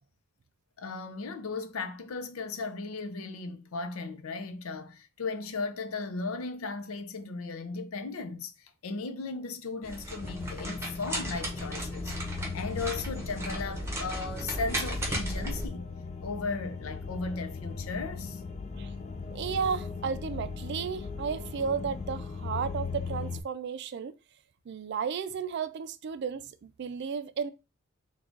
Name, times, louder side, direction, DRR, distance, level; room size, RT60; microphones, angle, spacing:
voice 1, 0.8-15.9 16.2-18.4, left 3 dB, 85° left, 0.5 m, -36 dB
sound 1, 9.8-15.7, right 1 dB, 15° right, 0.8 m, -36 dB
sound 2, 10.2-23.4, left 4 dB, 30° left, 0.4 m, -38 dB
voice 2, 19.3-24.1 24.7-27.5, right 6 dB, 55° right, 0.3 m, -33 dB
3.6 x 2.3 x 3.8 m
head